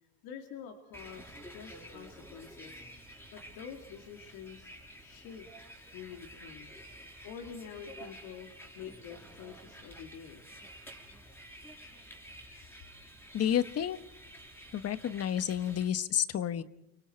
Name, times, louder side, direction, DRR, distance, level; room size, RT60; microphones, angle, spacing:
voice 1, 0.2-2.8 3.3-4.7 5.0-5.5 5.9-6.7 7.2-8.5 8.7-10.4, left 7 dB, 60° left, 4 dB, 2.5 m, -47 dB
Bus, 0.9-15.9, equal, 5° left, 5.4 m, -50 dB
voice 2, 13.3-14.0 14.7-16.6, left 10 dB, 35° left, 14 dB, 1.2 m, -30 dB
29.0 x 25.0 x 4.5 m, 0.82 s
supercardioid pair, 110°, 41 cm